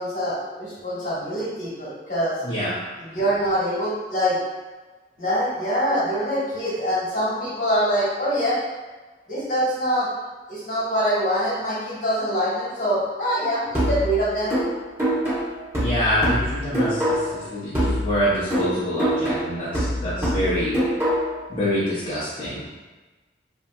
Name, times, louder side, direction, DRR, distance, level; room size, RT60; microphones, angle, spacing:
voice 1, 0.0-2.4 3.0-4.4 5.2-8.6 9.3-10.1 10.5-14.5, equal, 50° left, -9 dB, 1.3 m, -24 dB
voice 2, 2.4-2.7 15.8-20.8 21.5-22.7, equal, 30° left, -12 dB, 0.6 m, -25 dB
sound 1, 13.7-17.4 17.7-21.4, equal, 15° right, 1.0 m, -24 dB
3.3 x 2.7 x 2.3 m, 1.2 s
head